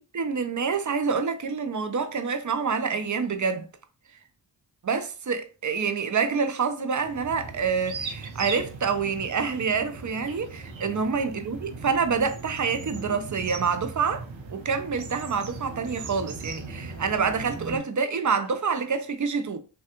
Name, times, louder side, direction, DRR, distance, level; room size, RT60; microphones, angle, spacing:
voice 1, 0.1-3.7 4.8-14.2 14.5-19.6, right 5 dB, 40° right, 0.5 m, -27 dB
sound 1, 7.0-17.8, right 3 dB, 75° right, 0.7 m, -39 dB
3.3 x 2.3 x 2.8 m
cardioid pair, 55°, 46 cm